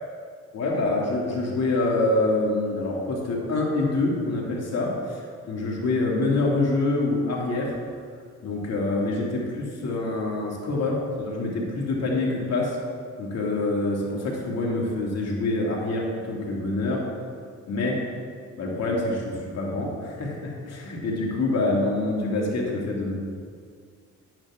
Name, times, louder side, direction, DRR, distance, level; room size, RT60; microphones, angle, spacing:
voice 1, 0.5-7.8 8.4-12.8 13.2-17.1 17.7-18.0 18.6-23.2, left 2 dB, 55° left, -3 dB, 2.6 m, -26 dB
10.5 x 9.0 x 3.7 m, 2.1 s
cardioid pair, 90°, 30 cm